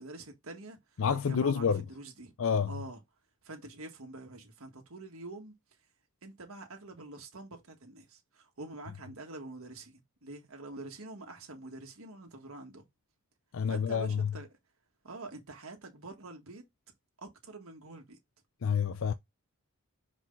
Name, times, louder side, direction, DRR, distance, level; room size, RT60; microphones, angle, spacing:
voice 1, 0.0-2.3 2.7-3.0 3.4-5.5 6.2-12.8 13.7-14.5 15.0-16.6 17.2-18.2, right 2 dB, 75° right, 1.7 m, -46 dB
voice 2, 1.0-1.8 2.4-2.7 13.5-14.3 18.6-19.1, left 6 dB, 65° left, 0.4 m, -28 dB
5.8 x 4.9 x 3.8 m
head